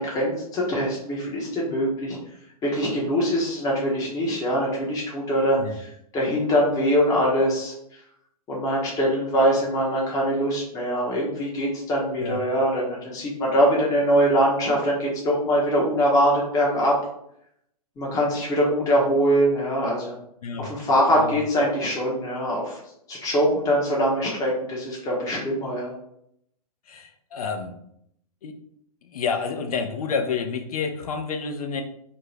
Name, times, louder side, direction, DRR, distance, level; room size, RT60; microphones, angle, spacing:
voice 1, 0.0-2.2 2.6-5.9 6.1-8.0 8.5-16.9 18.0-20.2 20.6-22.8 23.1-25.9, equal, 20° left, -3 dB, 0.7 m, -23 dB
voice 2, 26.9-27.8 28.4-28.6 29.0-31.8, left 5 dB, 70° left, 6 dB, 0.5 m, -29 dB
2.6 x 2.1 x 3.1 m, 0.73 s
figure-of-eight pair, 115°, 20 cm